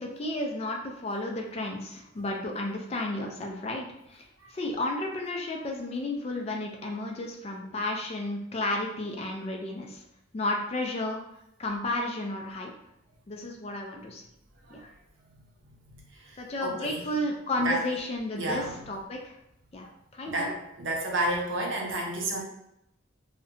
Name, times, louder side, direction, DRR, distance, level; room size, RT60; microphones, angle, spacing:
voice 1, 0.0-4.2 4.5-10.0 10.3-11.2 11.6-12.7 13.3-14.2 14.7-14.9 16.4-19.4 19.7-19.9 20.1-20.5, left 2 dB, 30° left, 1 dB, 0.3 m, -32 dB
voice 2, 15.9-17.0 17.6-17.8 18.4-18.8 20.2-22.4, right 1 dB, 75° right, 0 dB, 0.6 m, -31 dB
2.7 x 2.1 x 2.5 m, 0.78 s
head